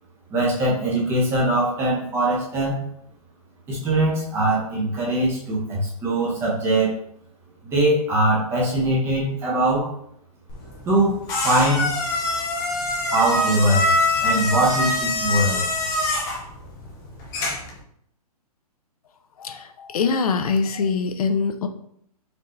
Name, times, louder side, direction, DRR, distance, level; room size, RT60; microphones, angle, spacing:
voice 1, 0.3-2.8 3.7-6.9 7.6-9.9 10.9-11.9 13.1-13.9 14.2-15.7, right 1 dB, 15° right, -5 dB, 0.8 m, -22 dB
sound 1, 10.5-17.8, left 2 dB, 15° left, 0.5 m, -24 dB
voice 2, 19.4-21.7, left 5 dB, 70° left, 8 dB, 0.6 m, -23 dB
4.3 x 2.7 x 3.1 m, 0.71 s
hypercardioid pair, 160°, 19 cm